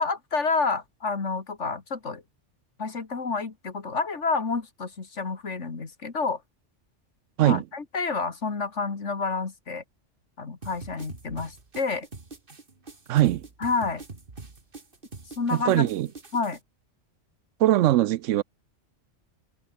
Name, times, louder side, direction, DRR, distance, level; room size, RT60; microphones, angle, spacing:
voice 1, 0.0-2.2 2.8-6.4 7.4-9.8 10.4-12.1 13.6-14.0 15.4-15.9 16.3-16.6, left 4 dB, 75° left, 2.6 m, -29 dB
sound 1, 10.6-16.6, right 3 dB, 45° right, 2.4 m, -44 dB
voice 2, 13.1-13.4 15.5-16.1 17.6-18.4, right 14 dB, 85° right, 0.9 m, -21 dB
omnidirectional pair, 1.2 m